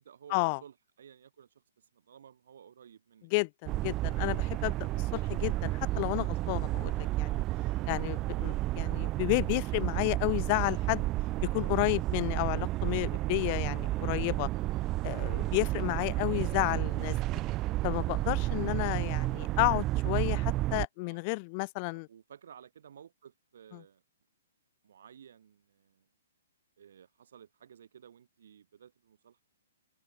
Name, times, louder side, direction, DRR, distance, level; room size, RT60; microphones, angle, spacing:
voice 1, 0.0-3.3 21.0-21.3 21.9-24.0 24.8-26.1 26.8-29.4, right 8 dB, 65° right, 4.5 m, -55 dB
voice 2, 3.3-7.4 7.9-11.1 11.5-14.5 15.0-17.2 17.8-22.1 23.7-23.8, left 31 dB, 30° left, 0.5 m, -31 dB
sound 1, 3.7-20.9, right 17 dB, 20° right, 0.7 m, -31 dB
hypercardioid pair, 160°, 0 cm